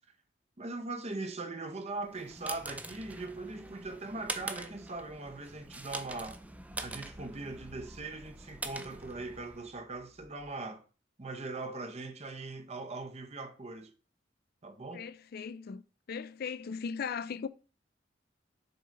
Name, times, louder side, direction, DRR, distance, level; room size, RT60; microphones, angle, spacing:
voice 1, 0.6-6.4 6.8-10.8 11.2-13.9 14.6-15.1, right 3 dB, 35° right, 0.8 m, -40 dB
sound 1, 2.0-9.7, right 2 dB, 10° right, 0.5 m, -44 dB
sound 2, 4.4-7.2 7.6-10.6, equal, 85° left, 1.2 m, -63 dB
voice 2, 14.9-15.8 16.1-17.5, left 6 dB, 55° left, 0.4 m, -38 dB
6.7 x 4.3 x 3.8 m
head